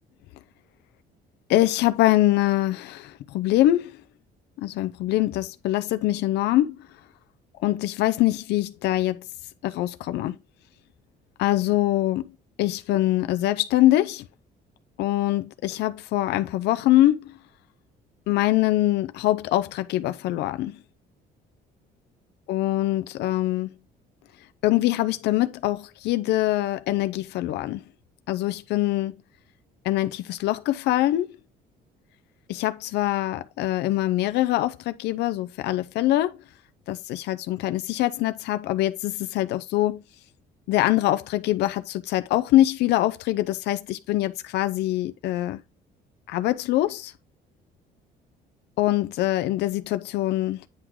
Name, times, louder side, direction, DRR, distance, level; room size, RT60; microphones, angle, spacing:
voice 1, 1.5-3.9 4.6-6.8 7.6-9.3 9.6-10.4 11.4-12.3 12.6-14.2 15.0-17.3 18.3-20.8 22.5-23.7 24.6-27.8 28.3-29.2 29.8-31.3 32.5-36.4 36.9-40.0 40.7-45.6 46.3-47.1 48.8-50.6, left 15 dB, 80° left, 0.7 m, -23 dB
9.6 x 3.8 x 4.7 m
cardioid pair, 110°, 17 cm